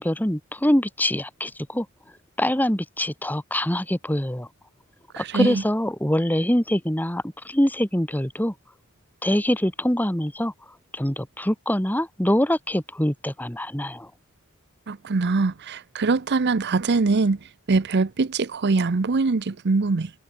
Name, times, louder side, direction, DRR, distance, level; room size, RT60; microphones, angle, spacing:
voice 1, 0.0-1.9 2.4-4.5 5.2-8.5 9.2-10.5 10.9-14.1, left 1 dB, 10° left, 1.8 m, -24 dB
voice 2, 5.1-5.6 14.9-20.1, right 3 dB, 50° right, 0.6 m, -23 dB
head